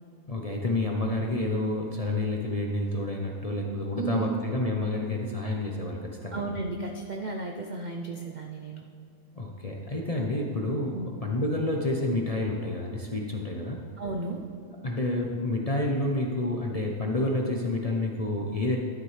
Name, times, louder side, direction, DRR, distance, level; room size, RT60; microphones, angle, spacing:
voice 1, 0.3-6.4 9.3-11.0 11.2-13.8 14.8-18.8, left 2 dB, 40° left, 0 dB, 0.5 m, -29 dB
voice 2, 4.0-4.4 6.3-8.8 10.9-11.1 14.0-14.4, right 4 dB, 75° right, 2 dB, 0.4 m, -33 dB
12.0 x 7.5 x 3.2 m, 2.3 s
omnidirectional pair, 1.6 m